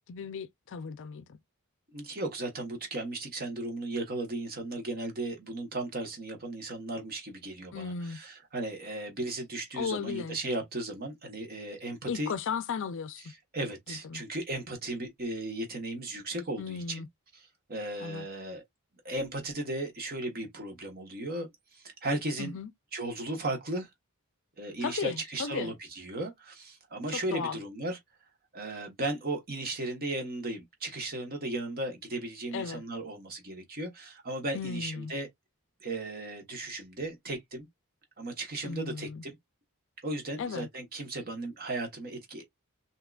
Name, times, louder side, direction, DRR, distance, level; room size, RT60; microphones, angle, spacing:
voice 1, 0.1-1.4 7.7-8.2 9.7-10.4 12.0-13.2 13.9-14.2 16.6-17.1 18.0-18.3 22.4-22.7 24.8-25.7 27.1-27.6 32.5-32.8 34.5-35.1 38.6-39.2 40.4-40.7, left 5 dB, 60° left, 0.4 m, -35 dB
voice 2, 1.9-12.3 13.5-17.0 17.7-18.6 19.0-21.5 21.7-22.6 22.9-23.9 24.6-28.0 28.5-35.3 35.8-37.7 38.2-39.4 40.0-42.4, right 2 dB, 45° right, 1.1 m, -36 dB
3.6 x 2.8 x 2.3 m
head